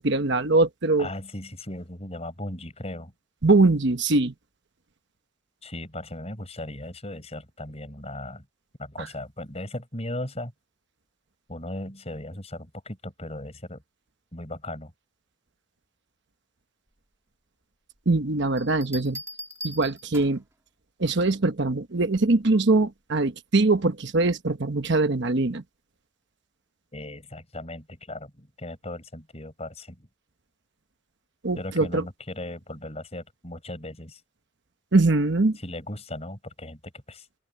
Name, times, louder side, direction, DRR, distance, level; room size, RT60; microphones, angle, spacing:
voice 1, 0.0-1.1 3.4-4.3 9.0-9.1 18.1-19.2 19.6-20.4 21.0-25.6 31.4-32.0 34.9-35.6, right 2 dB, 55° right, 1.1 m, -22 dB
voice 2, 1.0-3.1 5.6-8.4 8.8-10.5 11.5-13.8 14.3-14.9 26.9-30.1 31.6-34.2 35.6-37.3, left 1 dB, 30° left, 6.8 m, -37 dB
Bell, 18.6-20.5 22.1-22.5, equal, 15° right, 2.0 m, -40 dB
open air
head